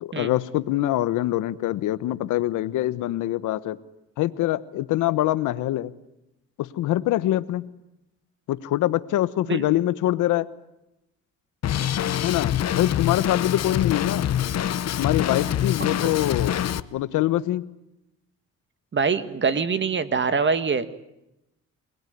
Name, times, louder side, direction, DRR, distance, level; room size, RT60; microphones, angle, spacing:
voice 1, 0.0-3.8 4.2-5.9 6.6-7.7 8.5-10.5 12.2-14.3 15.0-16.5 16.9-17.7, left 14 dB, 90° left, 15 dB, 1.1 m, -24 dB
Drum kit, 11.6-16.8, left 10 dB, 60° left, 1.0 m, -25 dB
voice 2, 15.8-16.1 18.9-20.9, right 5 dB, 40° right, 11 dB, 1.9 m, -24 dB
27.5 x 20.5 x 9.5 m, 0.89 s
cardioid pair, 90°, 30 cm